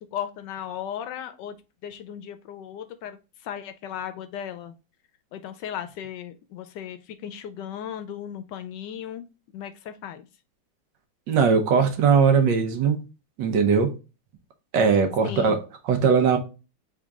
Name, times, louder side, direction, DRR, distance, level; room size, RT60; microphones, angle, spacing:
voice 1, 0.1-1.6 1.8-4.7 5.3-9.2 9.5-10.3 15.2-15.6, left 9 dB, 75° left, 1.1 m, -36 dB
voice 2, 11.3-13.0 13.4-13.9 14.7-15.6 15.8-16.4, right 6 dB, 75° right, 1.5 m, -20 dB
3.7 x 3.7 x 3.5 m
omnidirectional pair, 2.1 m